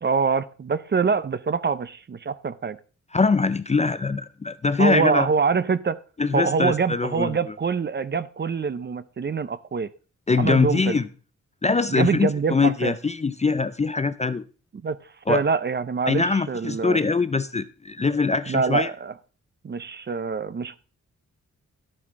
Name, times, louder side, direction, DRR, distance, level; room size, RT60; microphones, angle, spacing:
voice 1, 0.0-2.8 4.8-6.0 6.3-9.9 10.4-11.0 11.9-12.9 14.8-15.0 15.3-17.0 18.5-19.1 19.6-20.8, right 5 dB, 35° right, 0.5 m, -25 dB
voice 2, 3.1-5.3 6.2-7.4 10.3-11.0 11.6-14.4 15.3-15.4 16.1-18.9, left 4 dB, 20° left, 0.4 m, -23 dB
12.0 x 8.7 x 3.6 m
wide cardioid pair, 135°, 31 cm